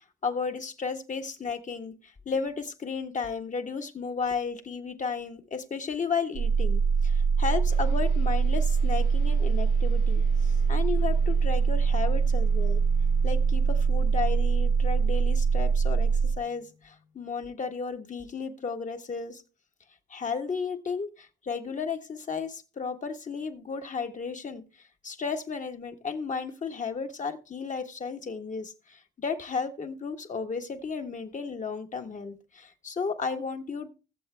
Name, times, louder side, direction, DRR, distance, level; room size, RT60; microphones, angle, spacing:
voice 1, 0.2-12.8 13.2-19.4 20.1-24.6 25.0-33.9, left 5 dB, 40° left, 1.4 m, -34 dB
sound 1, 6.3-16.4, right 5 dB, 85° right, 1.8 m, -23 dB
sound 2, 7.7-17.4, left 6 dB, 80° left, 1.5 m, -52 dB
20.5 x 7.3 x 2.2 m
cardioid pair, 90°, 20 cm